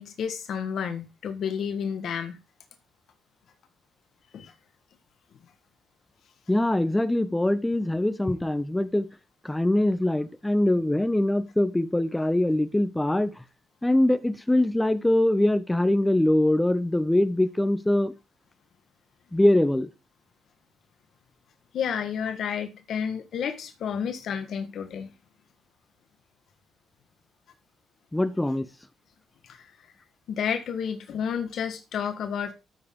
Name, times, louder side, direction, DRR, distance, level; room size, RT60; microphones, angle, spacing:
voice 1, 0.0-2.4 4.3-4.5 21.7-25.1 29.4-29.7 30.3-32.5, left 7 dB, 65° left, 1.4 m, -31 dB
voice 2, 6.5-9.1 9.4-13.3 13.8-18.1 19.3-19.9 28.1-28.6, left 1 dB, 10° left, 1.0 m, -23 dB
12.5 x 7.6 x 3.7 m
cardioid pair, 90°, 0 cm